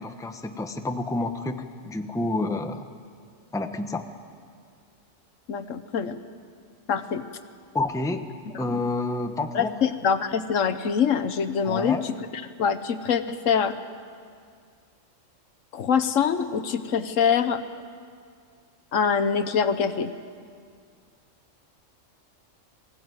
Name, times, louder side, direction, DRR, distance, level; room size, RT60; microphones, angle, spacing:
voice 1, 0.0-2.9 3.5-4.1 7.7-8.3 8.6-9.7 11.6-12.0, left 2 dB, 5° left, 6 dB, 0.8 m, -29 dB
voice 2, 5.5-6.2 6.9-7.2 9.5-11.9 12.6-13.7 15.7-17.6 18.9-20.1, left 7 dB, 75° left, 11 dB, 1.3 m, -24 dB
22.0 x 16.0 x 9.5 m, 2.1 s
omnidirectional pair, 1.3 m